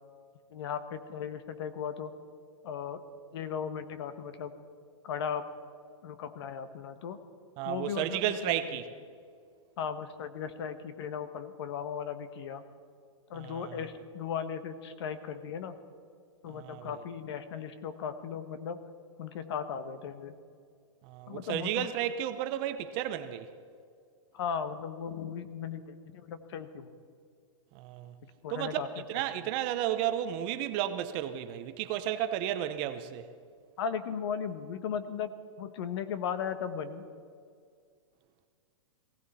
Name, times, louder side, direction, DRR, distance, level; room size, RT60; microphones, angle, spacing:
voice 1, 0.5-2.1 2.6-3.0 3.3-4.5 5.0-5.4 6.0-7.2 7.6-8.5 9.8-12.6 13.3-15.8 16.4-18.8 19.2-20.3 21.3-21.9 24.3-26.9 28.4-28.9 33.8-35.3 35.6-37.0, left 7 dB, 55° left, 1.3 m, -37 dB
voice 2, 7.6-8.9 13.3-13.9 16.5-17.0 21.0-23.5 27.7-28.1 28.5-28.8 29.1-33.3, right 11 dB, 30° right, 0.8 m, -33 dB
20.0 x 16.5 x 4.3 m
hypercardioid pair, 150°, 16 cm